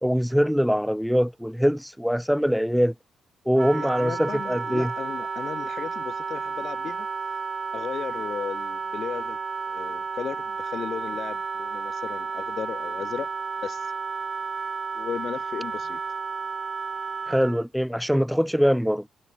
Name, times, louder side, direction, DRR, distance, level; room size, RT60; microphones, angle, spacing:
voice 1, 0.0-2.9 3.5-4.9 17.3-19.1, equal, ahead, 2.4 m, -23 dB
Wind instrument woodwind instrument, 3.5-17.6, right 5 dB, 45° right, 0.5 m, -32 dB
voice 2, 3.7-7.1 7.7-9.4 9.7-13.3 13.6-13.9 14.9-16.2, left 8 dB, 60° left, 0.9 m, -35 dB
supercardioid pair, 55°, 0 cm